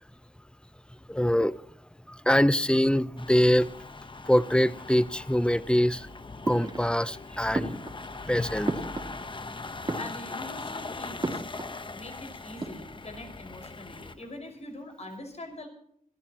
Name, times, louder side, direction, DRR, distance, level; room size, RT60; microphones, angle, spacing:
voice 1, 1.1-1.6 2.1-3.7 4.3-6.1 6.5-7.7 8.2-8.7, equal, 5° left, 0.8 m, -24 dB
sound 1, 3.2-14.2, left 3 dB, 35° left, 1.1 m, -40 dB
sound 2, 6.4-7.2 7.5-9.5 9.8-10.6 11.2-11.8 12.1-12.2 12.4-13.2, right 2 dB, 35° right, 3.3 m, -34 dB
voice 2, 10.0-11.4 11.9-15.7, left 1 dB, 50° left, 5.5 m, -43 dB
25.5 x 15.0 x 3.0 m
cardioid pair, 65°, 14 cm